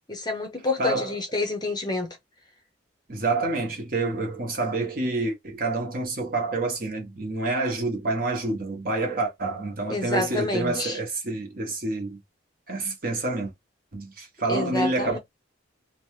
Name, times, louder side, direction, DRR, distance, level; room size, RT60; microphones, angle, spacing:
voice 1, 0.1-2.2 9.9-11.0 14.5-15.2, left 2 dB, 20° left, 0.7 m, -28 dB
voice 2, 0.8-1.2 3.1-12.2 12.7-13.5 13.9-15.2, right 2 dB, 45° right, 0.9 m, -28 dB
2.9 x 2.2 x 3.1 m
head